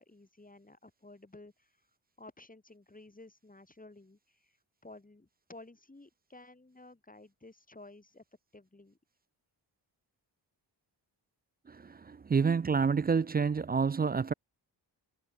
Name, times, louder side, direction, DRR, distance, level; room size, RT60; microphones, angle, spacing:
voice 1, 0.0-1.8 2.2-4.6 4.8-8.2 8.5-9.0, left 2 dB, 20° left, 3.1 m, -54 dB
voice 2, 11.7-14.3, right 5 dB, 25° right, 0.3 m, -28 dB
cardioid pair, 60°, 45 cm